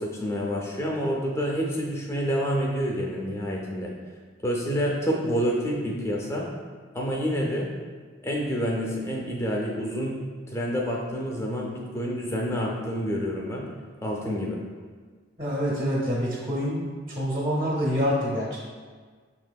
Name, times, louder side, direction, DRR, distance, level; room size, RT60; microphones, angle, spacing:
voice 1, 0.0-3.9 4.4-6.5 6.9-7.7 8.2-10.2 10.5-13.6 14.0-14.6, equal, 15° left, -2 dB, 0.4 m, -28 dB
voice 2, 15.4-16.8 17.1-18.6, equal, 25° right, -6 dB, 0.7 m, -26 dB
5.9 x 2.7 x 2.2 m, 1.6 s
head